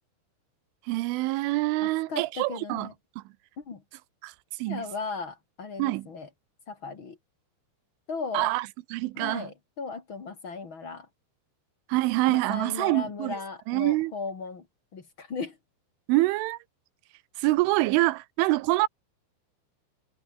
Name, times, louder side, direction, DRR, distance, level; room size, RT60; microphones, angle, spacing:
voice 1, 0.9-2.9 3.2-3.3 4.2-4.3 4.6-4.9 5.8-6.1 8.3-9.5 11.9-13.4 13.7-14.1 16.1-16.6 17.4-18.9, right 20 dB, 85° right, 3.4 m, -26 dB
voice 2, 2.1-2.9 3.6-3.8 4.7-6.3 6.7-7.2 8.1-8.5 9.2-11.1 12.3-14.6 14.9-15.6, left 4 dB, 40° left, 2.1 m, -36 dB
omnidirectional pair, 5.5 m